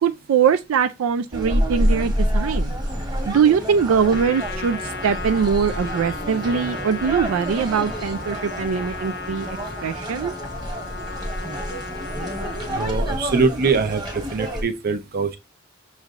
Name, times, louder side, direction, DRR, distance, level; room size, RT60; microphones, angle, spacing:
voice 1, 0.0-2.7 3.3-9.6 9.8-10.3, right 6 dB, 85° right, 0.4 m, -22 dB
sound 1, 1.3-14.6, equal, 20° right, 1.2 m, -28 dB
Trumpet, 4.0-13.0, left 4 dB, 55° left, 0.6 m, -35 dB
voice 2, 12.7-14.0 14.3-15.4, right 4 dB, 50° right, 0.6 m, -22 dB
6.3 x 3.2 x 2.5 m
head